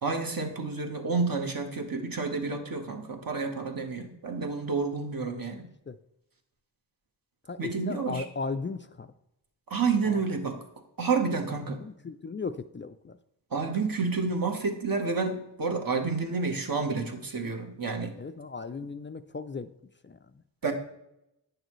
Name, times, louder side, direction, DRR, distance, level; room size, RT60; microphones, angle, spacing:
voice 1, 0.0-5.7 7.6-8.2 9.7-10.6 11.0-11.8 13.5-18.2 20.6-20.7, right 4 dB, 50° right, 4 dB, 1.2 m, -29 dB
voice 2, 7.5-9.1 10.0-10.2 11.6-13.2 18.2-19.7 20.0-20.4, left 4 dB, 30° left, 10 dB, 0.3 m, -37 dB
9.0 x 6.6 x 3.1 m, 0.84 s
cardioid pair, 65°, 45 cm